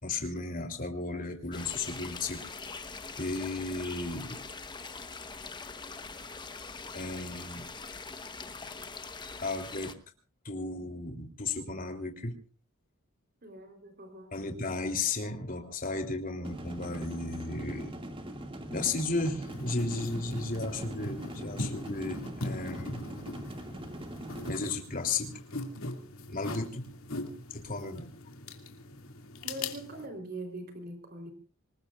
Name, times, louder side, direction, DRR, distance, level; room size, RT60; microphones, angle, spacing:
voice 1, 0.0-2.7 3.2-4.4 6.9-7.7 9.4-9.9 10.4-12.3 14.3-17.9 18.7-23.0 23.5-23.6 24.5-25.3 26.3-26.8 27.5-28.1, left 3 dB, 40° left, 5 dB, 3.3 m, -34 dB
sound 1, 1.5-9.9, left 4 dB, 20° left, 1.1 m, -43 dB
voice 2, 13.4-14.3 29.4-31.3, right 1 dB, 45° right, 5 dB, 3.7 m, -42 dB
sound 2, 16.4-24.5, right 1 dB, 25° right, 2.2 m, -42 dB
sound 3, 19.5-30.1, left 2 dB, 80° left, 2.4 m, -40 dB
26.0 x 20.5 x 2.5 m, 0.36 s
head